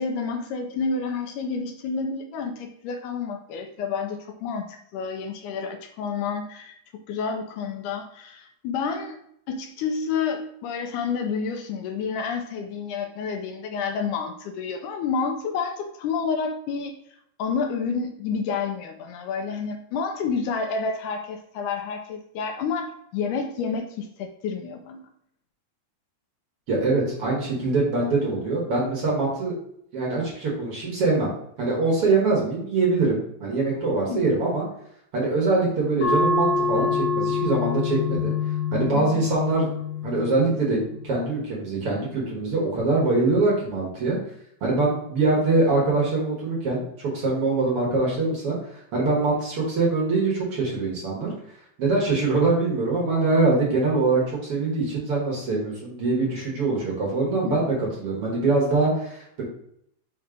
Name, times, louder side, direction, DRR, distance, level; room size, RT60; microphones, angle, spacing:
voice 1, 0.0-6.8 7.1-9.2 9.5-17.0 17.4-25.1 34.1-34.4 39.0-39.2 57.5-57.6, left 5 dB, 80° left, 5 dB, 2.0 m, -29 dB
voice 2, 26.7-29.6 29.9-31.3 31.6-34.6 35.1-38.3 38.7-39.7 40.0-44.2 44.6-48.6 48.9-51.3 51.8-59.4, right 3 dB, 50° right, -3 dB, 2.0 m, -23 dB
sound 1, 36.0-41.1, left 4 dB, 55° left, 1.7 m, -26 dB
5.8 x 3.2 x 5.0 m, 0.71 s
omnidirectional pair, 3.8 m